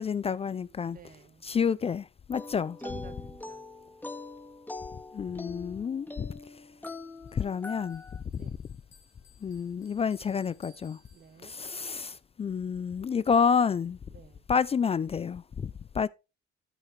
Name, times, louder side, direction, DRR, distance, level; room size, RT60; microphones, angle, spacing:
voice 1, 0.0-1.0 1.4-2.8 5.1-6.3 7.3-8.0 8.3-8.5 9.4-11.0 11.4-14.0 14.5-16.1, left 6 dB, 30° left, 0.4 m, -29 dB
voice 2, 0.8-1.5 2.8-3.7 8.4-8.6 11.1-11.6 14.1-14.5, right 6 dB, 45° right, 1.2 m, -52 dB
sound 1, 2.3-8.2, left 2 dB, 10° left, 1.8 m, -43 dB
Bell, 7.3-11.8, left 4 dB, 70° left, 3.3 m, -63 dB
13.5 x 5.7 x 3.2 m
cardioid pair, 90°, 20 cm